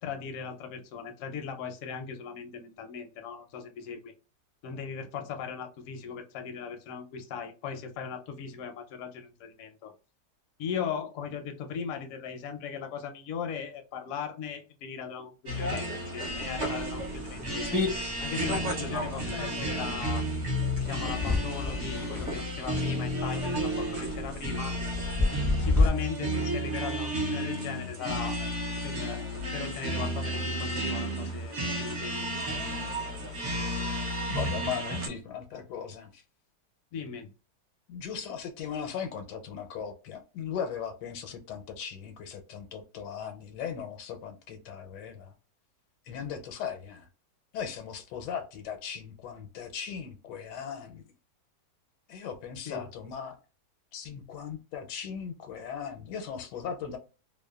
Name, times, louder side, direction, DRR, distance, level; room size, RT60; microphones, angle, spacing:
voice 1, 0.0-4.1 4.6-9.9 10.6-17.8 18.2-20.2 20.8-24.8 25.6-28.4 28.8-29.2 29.5-32.3 36.9-37.3 52.7-52.9, left 7 dB, 70° left, 0.8 m, -38 dB
sound 1, 15.5-35.1, equal, 60° right, 0.9 m, -32 dB
sound 2, 16.3-25.9, left 2 dB, 5° left, 0.4 m, -33 dB
voice 2, 34.3-36.2 37.9-45.3 46.1-47.1 47.5-51.0 52.1-53.4 53.9-57.0, left 7 dB, 85° left, 1.2 m, -38 dB
2.8 x 2.1 x 2.2 m
omnidirectional pair, 1.8 m